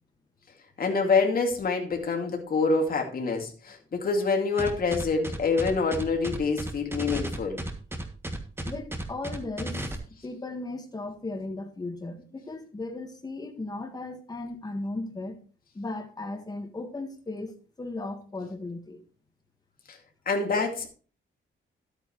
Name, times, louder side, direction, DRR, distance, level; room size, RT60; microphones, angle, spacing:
voice 1, 0.8-7.6 19.9-20.0 20.3-20.9, left 4 dB, 45° left, 2.4 m, -26 dB
sound 1, 4.6-9.9, right 1 dB, 10° right, 1.5 m, -34 dB
voice 2, 8.6-9.8 10.2-15.4 15.7-19.0, left 2 dB, 20° left, 1.6 m, -36 dB
12.0 x 8.9 x 3.1 m
wide cardioid pair, 155°, 21 cm